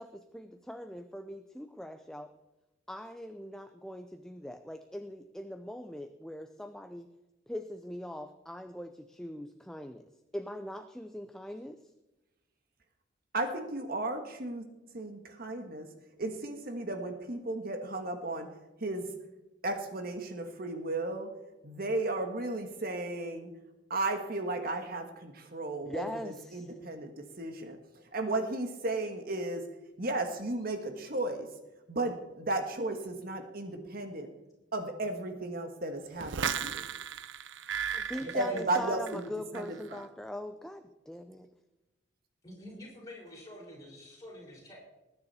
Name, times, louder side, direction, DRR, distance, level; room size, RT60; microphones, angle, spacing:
voice 1, 0.0-2.3 2.9-7.1 7.5-10.0 10.3-11.8 25.9-26.7 37.9-41.5, equal, 5° left, 7 dB, 0.6 m, -41 dB
voice 2, 13.3-14.6 14.9-15.9 16.2-18.5 18.8-19.1 19.6-21.3 21.6-23.5 23.9-26.0 26.5-27.1 27.4-27.8 28.1-29.6 30.0-31.5 31.9-34.3 34.7-36.8 38.3-39.2 39.5-40.0, right 2 dB, 50° right, 6 dB, 1.6 m, -34 dB
sound 1, 36.2-39.3 39.5-40.0, right 8 dB, 75° right, 0.6 m, -36 dB
voice 3, 38.2-38.6 42.4-44.8, left 1 dB, 20° left, -3 dB, 5.8 m, -47 dB
20.5 x 9.8 x 4.3 m, 0.99 s
head